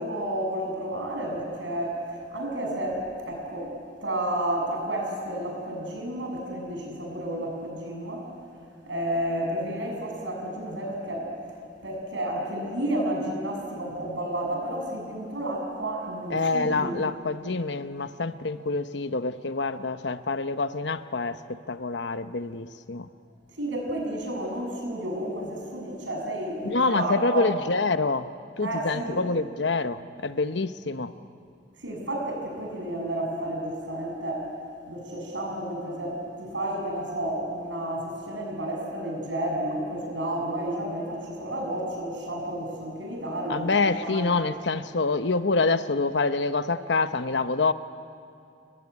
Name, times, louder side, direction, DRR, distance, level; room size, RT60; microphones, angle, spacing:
voice 1, 0.0-3.7 4.0-8.3 8.8-11.3 11.8-16.9 23.6-27.5 28.6-29.2 31.8-34.5 34.9-44.3, right 1 dB, 90° right, 1 dB, 7.4 m, -31 dB
voice 2, 16.3-23.1 26.6-28.3 28.6-31.1 43.5-47.7, left 3 dB, 75° left, 11 dB, 1.0 m, -26 dB
28.0 x 22.0 x 9.6 m, 2.4 s
head